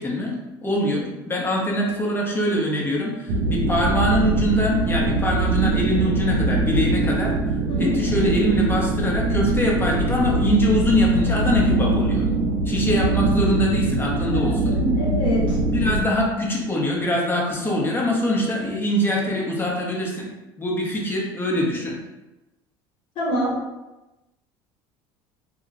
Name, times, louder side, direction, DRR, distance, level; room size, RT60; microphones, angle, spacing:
voice 1, 0.0-7.3 7.8-12.3 12.6-14.8 15.7-20.3 20.6-22.0, equal, 20° left, -2 dB, 0.8 m, -23 dB
sound 1, 3.3-16.0, right 2 dB, 75° right, 0.5 m, -22 dB
voice 2, 14.3-15.6 23.1-23.5, left 1 dB, 50° left, -4 dB, 1.2 m, -26 dB
2.3 x 2.0 x 3.7 m, 1.0 s
supercardioid pair, 90°, 12 cm